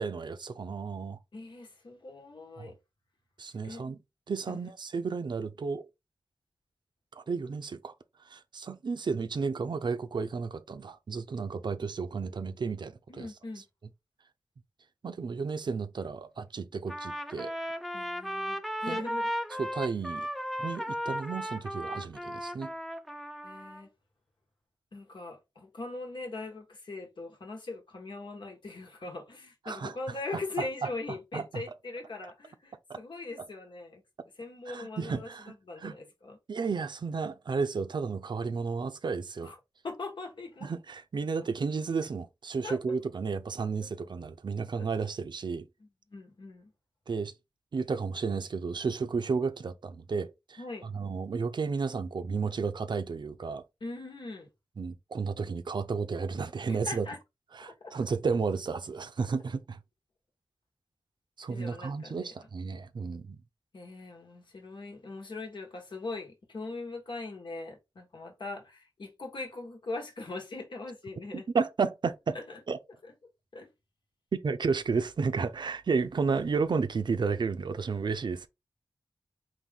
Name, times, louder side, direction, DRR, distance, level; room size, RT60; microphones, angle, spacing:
voice 1, 0.0-1.2 2.6-2.7 3.4-4.0 4.3-5.9 7.2-7.9 8.3-13.3 15.0-17.5 18.9-19.1 19.6-20.3 20.6-22.7 29.7-30.0 30.8-30.9 31.3-31.6 32.9-33.0 33.4-33.5 34.7-35.9 36.5-39.5 40.6-45.7 47.1-47.3 47.7-53.6 54.8-57.1 57.5-59.8 61.4-63.4 71.3-72.4 72.7-72.8 74.3-78.5, right 5 dB, 65° right, 0.5 m, -32 dB
voice 2, 1.3-2.7 3.6-3.8 4.5-4.6 13.1-13.6 17.9-19.3 23.4-23.9 24.9-34.0 34.4-36.4 39.4-39.6 39.8-40.7 42.6-42.8 43.8-43.9 44.8-44.9 45.8-46.7 50.6-50.9 53.8-54.5 56.7-57.2 57.8-57.9 61.5-62.3 63.7-71.5 72.3-72.6 73.0-73.1 73.5-73.7, left 3 dB, 75° left, 1.3 m, -41 dB
Trumpet, 16.9-23.8, equal, ahead, 0.5 m, -36 dB
4.0 x 2.6 x 3.5 m
wide cardioid pair, 65°, 8 cm